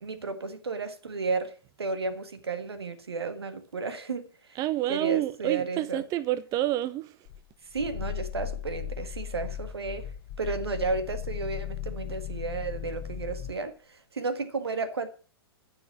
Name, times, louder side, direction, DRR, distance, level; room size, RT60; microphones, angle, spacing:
voice 1, 0.0-1.5 1.8-4.2 4.9-6.0 7.7-10.1 10.4-15.1, right 4 dB, 80° right, 1.6 m, -33 dB
voice 2, 4.6-7.2, right 15 dB, 30° right, 0.5 m, -28 dB
Growling, 7.3-13.6, left 9 dB, 45° left, 0.9 m, -37 dB
11.0 x 6.6 x 7.1 m
figure-of-eight pair, 110°, 13 cm